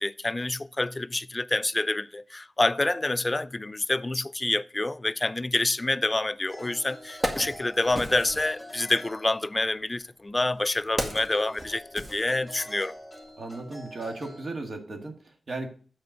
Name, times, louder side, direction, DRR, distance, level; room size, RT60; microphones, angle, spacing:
voice 1, 0.0-12.9, left 2 dB, 30° left, 0.3 m, -27 dB
Wood, 6.4-6.5 6.9-8.5 9.5-12.8 13.2-13.3, equal, 25° right, 1.9 m, -35 dB
sound 1, 6.5-9.9 11.1-14.6, left 1 dB, ahead, 2.0 m, -45 dB
voice 2, 13.4-15.7, right 2 dB, 60° right, 1.8 m, -36 dB
7.9 x 4.3 x 6.6 m
cardioid pair, 65°, 0 cm